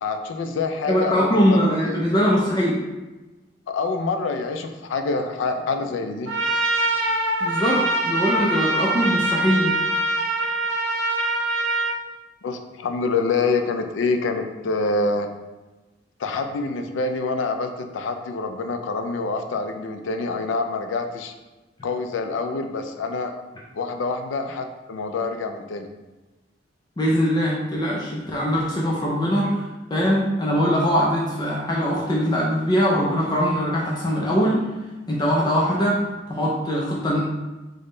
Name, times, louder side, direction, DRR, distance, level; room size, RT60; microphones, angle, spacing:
voice 1, 0.0-1.9 3.7-6.3 12.4-15.3 16.2-21.3 21.8-23.4 23.7-25.9, left 3 dB, 90° left, 6 dB, 0.4 m, -26 dB
voice 2, 0.9-2.8 7.4-9.7 27.0-29.6 29.9-34.6 35.1-36.0 36.3-37.2, equal, 20° left, -4 dB, 0.4 m, -21 dB
Trumpet, 6.3-12.0, right 2 dB, 90° right, 0.5 m, -23 dB
3.6 x 2.1 x 3.7 m, 1.1 s
head